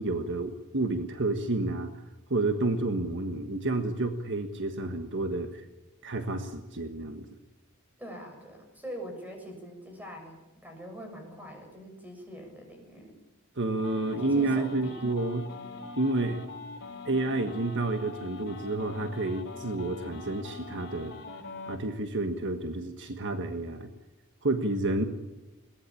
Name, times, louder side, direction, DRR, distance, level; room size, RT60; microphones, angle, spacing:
voice 1, 0.0-1.9 2.3-5.7 6.0-7.3 13.6-15.5 16.0-16.4 17.0-21.1 21.7-23.9 24.4-25.0, right 2 dB, 55° right, 7 dB, 1.6 m, -30 dB
voice 2, 8.0-13.1 14.2-15.0, equal, 10° right, 3 dB, 7.0 m, -43 dB
sound 1, 13.8-21.8, left 3 dB, 50° left, 5.5 m, -43 dB
22.0 x 18.5 x 8.7 m, 1.1 s
head